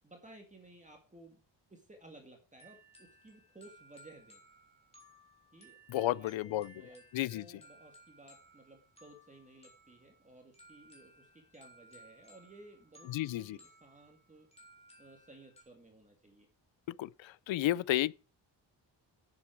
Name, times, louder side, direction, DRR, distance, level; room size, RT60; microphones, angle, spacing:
voice 1, 0.0-1.4 1.7-4.4 5.5-7.1 7.3-14.5 15.0-16.5 17.6-17.9, right 2 dB, 15° right, 2.0 m, -57 dB
sound 1, 2.6-15.6, equal, 15° left, 3.6 m, -60 dB
voice 2, 5.9-6.7 7.1-7.4 13.1-13.6 17.0-18.1, left 15 dB, 90° left, 0.6 m, -32 dB
9.9 x 7.8 x 4.6 m
wide cardioid pair, 160°, 45 cm